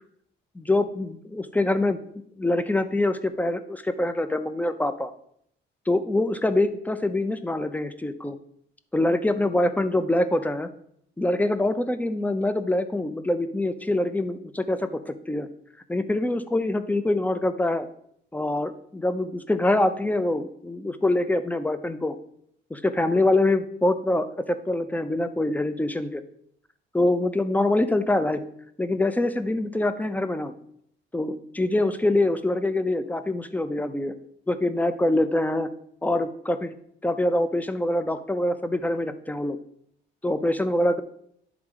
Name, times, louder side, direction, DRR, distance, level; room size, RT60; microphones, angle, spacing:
voice 1, 0.6-2.0 2.4-5.1 5.9-8.4 8.9-10.7 11.2-15.5 15.9-17.9 18.3-22.2 22.7-26.2 26.9-28.4 28.8-30.5 31.1-34.1 34.5-35.7 36.0-36.7 37.0-39.6 40.2-41.0, left 1 dB, 10° left, 11 dB, 0.6 m, -24 dB
10.5 x 3.6 x 4.9 m, 0.69 s
cardioid pair, 90°, 20 cm